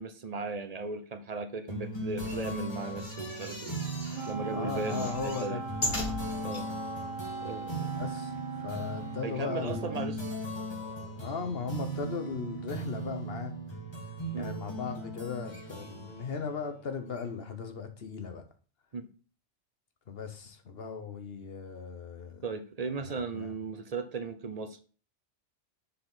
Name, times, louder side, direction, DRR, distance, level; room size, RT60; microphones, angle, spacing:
voice 1, 0.0-3.8 4.3-5.6 6.4-6.6 7.4-7.9 9.2-10.2 14.3-14.6 18.9-19.1 22.4-24.8, right 4 dB, 40° right, 8 dB, 0.6 m, -36 dB
sound 1, 1.7-17.6, right 1 dB, 20° left, 1.6 m, -39 dB
sound 2, 2.1-4.3 4.7-6.6 7.2-7.3 7.5-7.6, left 1 dB, 40° left, 2.8 m, -38 dB
Wind instrument woodwind instrument, 4.1-10.2, right 3 dB, 75° right, 1.3 m, -40 dB
voice 2, 4.5-5.6 7.9-10.0 11.2-13.5 14.4-18.4 20.1-22.4 23.1-23.5, left 5 dB, 55° left, 7 dB, 1.1 m, -37 dB
6.9 x 4.8 x 3.8 m, 0.38 s
omnidirectional pair, 1.2 m